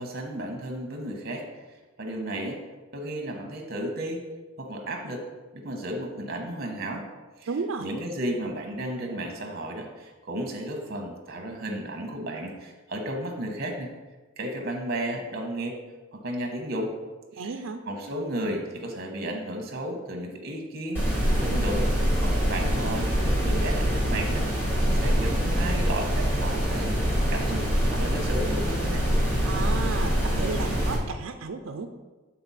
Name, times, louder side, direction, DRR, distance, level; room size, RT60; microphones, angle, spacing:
voice 1, 0.0-1.5 2.0-2.6 2.9-4.2 4.6-5.2 5.5-7.0 7.4-7.5 7.8-13.9 14.4-15.8 16.1-16.9 17.3-17.5 17.8-21.9 22.2-24.5 24.8-26.9 27.3-27.7 27.9-29.0, right 1 dB, 50° right, 2 dB, 1.2 m, -33 dB
voice 2, 7.5-7.9 17.4-17.8 29.4-31.9, right 4 dB, 75° right, 6 dB, 0.4 m, -33 dB
sound 1, 20.9-31.0, equal, 10° left, 1.8 m, -25 dB
7.8 x 4.2 x 4.2 m, 1.3 s
head